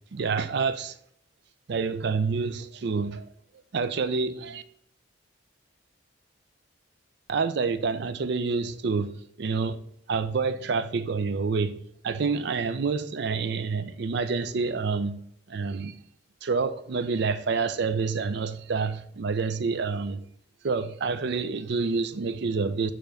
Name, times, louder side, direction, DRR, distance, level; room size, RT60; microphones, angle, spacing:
voice 1, 0.1-0.9 1.7-3.2 3.7-4.6 7.3-9.1 9.4-9.8 10.1-11.8 12.0-15.2 15.5-16.0 16.4-20.2 20.6-22.9, right 4 dB, 60° right, 0.4 m, -28 dB
6.7 x 3.0 x 5.1 m
head